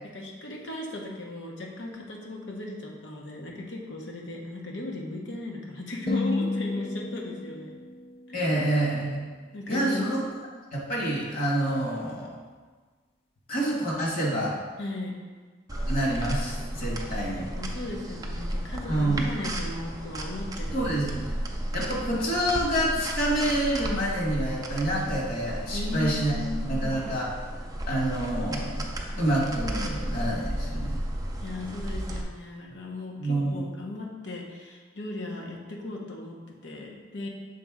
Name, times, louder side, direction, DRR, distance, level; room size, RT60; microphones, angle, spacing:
voice 1, 0.1-7.8 8.3-8.5 9.5-10.0 14.8-15.1 17.5-20.9 21.2-21.6 25.7-27.0 31.4-37.3, left 2 dB, 70° left, -1 dB, 1.1 m, -37 dB
sound 1, 6.1-10.4, left 3 dB, 30° left, 0.5 m, -34 dB
voice 2, 8.3-9.2 9.7-10.2 10.9-12.4 13.5-14.5 15.9-17.5 18.9-19.3 20.7-21.4 21.7-26.4 26.7-27.3 27.9-28.9 29.1-31.0 33.2-33.6, right 1 dB, 50° left, -4 dB, 1.7 m, -27 dB
sound 2, 15.7-32.2, right 1 dB, 20° right, 0.5 m, -33 dB
6.4 x 4.1 x 3.7 m, 1.4 s
head